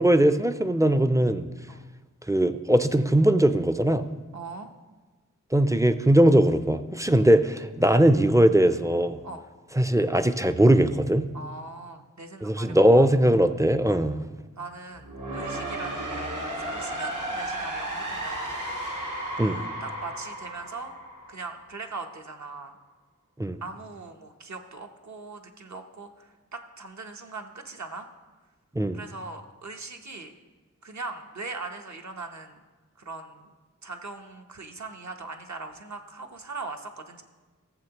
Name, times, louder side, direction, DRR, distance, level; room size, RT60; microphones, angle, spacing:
voice 1, 0.0-1.5 2.3-4.1 5.5-9.2 9.8-11.3 12.4-14.2 19.4-19.7 23.4-23.6 28.7-29.0, right 1 dB, 10° right, 10 dB, 0.4 m, -20 dB
voice 2, 4.3-4.7 9.2-9.4 11.3-13.1 14.6-18.6 19.4-20.9 21.3-22.8 23.6-28.1 28.9-30.3 30.8-32.6 33.0-33.5 33.8-37.2, right 3 dB, 65° right, 4 dB, 0.8 m, -40 dB
sound 1, 14.9-21.9, right 1 dB, 80° right, 1.6 m, -34 dB
14.5 x 7.1 x 2.9 m, 1.3 s
wide cardioid pair, 60°, 31 cm